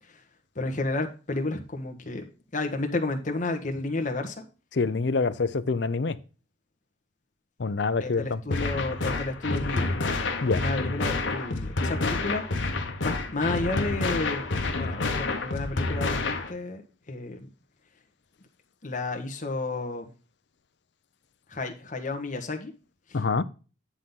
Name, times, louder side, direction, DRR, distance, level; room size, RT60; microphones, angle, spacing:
voice 1, 0.5-2.2 2.5-4.4 8.0-9.9 10.6-12.7 13.0-14.4 14.8-16.8 17.1-17.5 18.8-20.1 21.5-22.7, left 2 dB, 40° left, 1.4 m, -31 dB
voice 2, 4.7-6.2 7.6-8.7 10.4-10.6 23.1-23.4, left 4 dB, 60° left, 0.6 m, -26 dB
sound 1, 8.5-16.5, left 3 dB, 80° left, 1.2 m, -29 dB
10.0 x 3.8 x 5.6 m
head